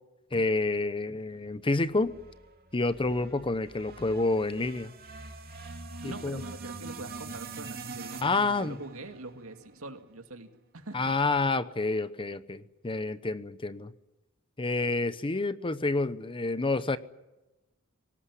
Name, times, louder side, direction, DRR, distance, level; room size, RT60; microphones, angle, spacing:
voice 1, 0.3-2.1 2.7-4.9 6.0-6.4 8.2-8.8 10.9-13.9 14.6-17.0, left 3 dB, 25° left, 14 dB, 0.8 m, -28 dB
sound 1, 1.9-10.2, right 3 dB, 45° right, 2.5 m, -44 dB
voice 2, 6.0-10.5 10.7-11.2, right 2 dB, 70° right, 6 dB, 2.4 m, -43 dB
22.0 x 19.0 x 9.9 m, 1.0 s
head